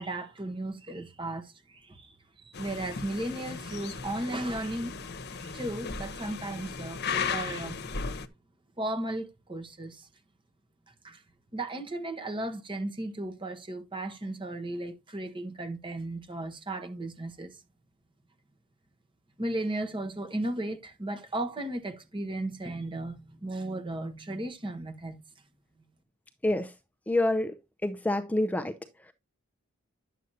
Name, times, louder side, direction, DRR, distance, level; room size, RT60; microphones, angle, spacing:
voice 1, 0.0-4.9 5.3-7.8 8.8-10.1 11.0-11.2 11.5-17.6 19.4-25.2, right 1 dB, 25° right, 1.3 m, -35 dB
sound 1, 2.5-8.3, left 5 dB, 50° left, 0.9 m, -36 dB
voice 2, 27.1-27.5 27.8-28.7, left 1 dB, 5° left, 0.5 m, -27 dB
10.5 x 7.6 x 2.7 m
head